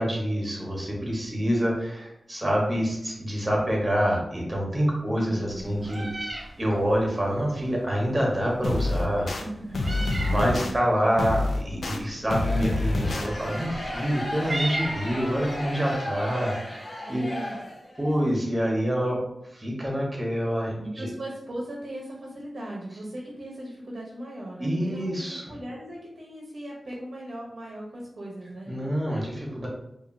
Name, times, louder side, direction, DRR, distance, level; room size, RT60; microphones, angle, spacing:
voice 1, 0.0-6.0 6.6-9.3 10.2-17.2 18.0-19.2 19.5-21.1 24.6-25.4 28.7-29.7, equal, 25° right, -2 dB, 1.1 m, -26 dB
voice 2, 5.1-5.6 9.4-10.7 17.0-17.6 20.8-28.9, right 1 dB, 60° right, -2 dB, 0.9 m, -38 dB
Meow, 5.5-15.6, right 1 dB, 40° right, 0.5 m, -39 dB
sound 1, 8.6-9.4 9.7-10.7 11.2-12.0 12.3-13.3, left 2 dB, 75° left, 0.4 m, -27 dB
sound 2, 12.2-18.1, left 1 dB, 50° left, 1.0 m, -36 dB
4.9 x 2.5 x 2.6 m, 0.84 s
wide cardioid pair, 95°, 0 cm